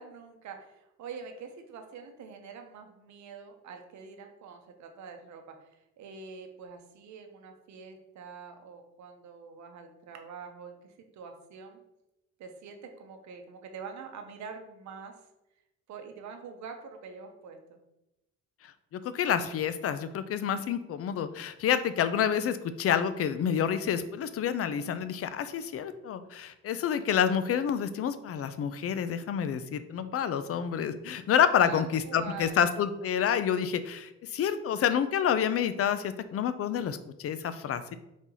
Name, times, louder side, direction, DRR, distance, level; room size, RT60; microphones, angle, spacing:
voice 1, 0.0-11.8 12.4-15.1 15.9-17.8 31.6-32.6, right 5 dB, 70° right, 5 dB, 0.8 m, -45 dB
voice 2, 18.9-38.0, left 8 dB, 50° left, 12 dB, 0.4 m, -28 dB
4.1 x 3.0 x 3.8 m, 0.92 s
cardioid pair, 90°, 30 cm